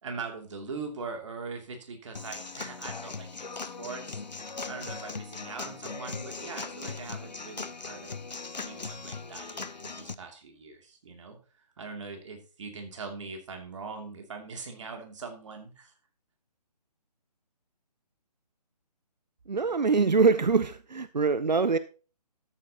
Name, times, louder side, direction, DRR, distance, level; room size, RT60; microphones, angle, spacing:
voice 1, 0.0-4.2 4.7-8.1 8.5-15.9, right 4 dB, 45° right, 2.9 m, -41 dB
Human voice / Acoustic guitar / Drum, 2.1-10.1, left 4 dB, 85° left, 0.8 m, -39 dB
voice 2, 19.5-21.8, right 4 dB, 85° right, 0.6 m, -24 dB
13.0 x 8.8 x 3.0 m
figure-of-eight pair, 145°, 21 cm